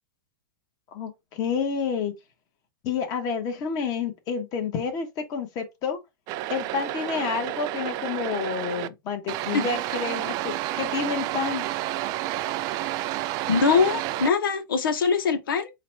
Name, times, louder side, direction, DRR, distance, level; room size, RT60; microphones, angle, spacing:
voice 1, 0.9-2.1 2.8-6.0 6.5-11.7, left 6 dB, 35° left, 1.3 m, -29 dB
sound 1, 6.3-8.9 9.3-14.3, right 14 dB, 35° right, 0.3 m, -30 dB
voice 2, 13.5-15.7, left 5 dB, 85° left, 1.0 m, -22 dB
4.0 x 2.4 x 4.4 m
hypercardioid pair, 135°, 11 cm